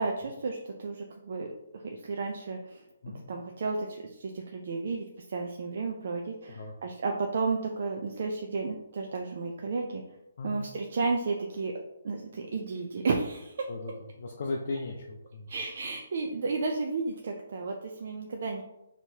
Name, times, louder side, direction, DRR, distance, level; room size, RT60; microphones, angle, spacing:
voice 1, 0.0-1.5 1.7-2.8 3.3-10.0 10.4-11.7 12.0-13.6 15.5-18.6, right 4 dB, 50° right, 2 dB, 0.4 m, -32 dB
voice 2, 13.7-15.5, left 3 dB, 50° left, 0 dB, 0.5 m, -37 dB
4.5 x 2.9 x 2.8 m, 0.91 s
hypercardioid pair, 170°, 0 cm